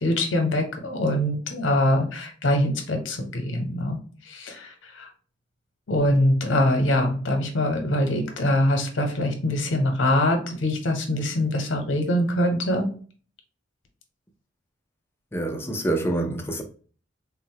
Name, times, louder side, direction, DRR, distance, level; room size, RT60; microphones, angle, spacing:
voice 1, 0.0-4.0 4.3-5.1 5.9-12.9, left 1 dB, 75° left, 0.7 m, -23 dB
voice 2, 15.3-16.6, right 1 dB, 10° left, 0.4 m, -26 dB
3.7 x 2.0 x 2.7 m
head